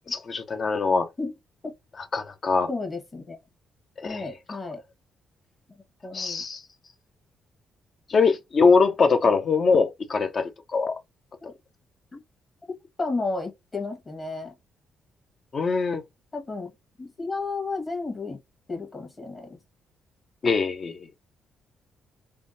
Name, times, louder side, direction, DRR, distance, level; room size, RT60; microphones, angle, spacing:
voice 1, 0.1-1.1 2.1-2.7 4.0-4.3 6.1-6.6 8.1-11.0 15.5-16.0 20.4-21.1, left 4 dB, 45° left, 0.6 m, -22 dB
voice 2, 2.7-3.4 4.0-4.8 6.0-6.4 11.4-11.5 12.1-12.2 13.0-14.5 16.3-16.7 17.0-18.4 18.7-19.6, left 3 dB, 30° left, 1.3 m, -32 dB
3.5 x 2.1 x 2.6 m
cardioid pair, 90°, 0 cm